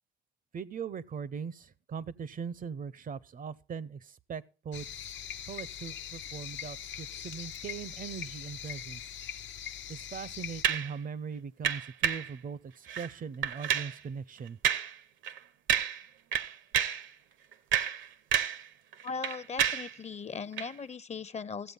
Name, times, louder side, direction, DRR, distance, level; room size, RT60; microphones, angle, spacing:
voice 1, 0.5-5.1 5.5-9.0 9.9-14.6, right 6 dB, 45° right, 0.6 m, -40 dB
sound 1, 4.7-10.6, left 9 dB, 70° left, 0.7 m, -42 dB
sound 2, 10.6-10.9 11.6-12.3 12.9-13.1 13.4-14.0 14.6-14.9 15.2-15.4 15.7-16.1 16.3-17.1 17.5-18.7 18.9-19.9 20.5-20.7, right 9 dB, 75° right, 0.8 m, -29 dB
voice 2, 19.0-21.7, left 5 dB, 35° left, 0.6 m, -38 dB
14.5 x 7.8 x 5.4 m
cardioid pair, 90°, 20 cm